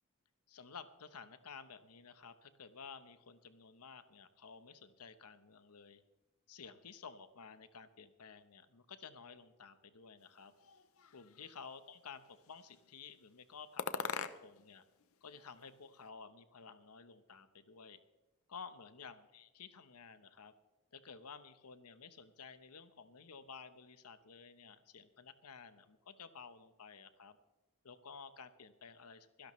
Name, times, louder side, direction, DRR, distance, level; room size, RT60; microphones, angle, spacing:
voice 1, 0.5-6.0 6.5-10.5 11.1-14.8 15.2-18.0 18.5-20.5 20.9-27.4 27.8-29.5, left 5 dB, 85° left, 11 dB, 1.0 m, -53 dB
sound 1, 10.6-11.6 12.2-12.9 13.8-14.7 15.0-16.1, left 6 dB, 65° left, 0.7 m, -43 dB
24.5 x 11.5 x 3.2 m, 1.1 s
head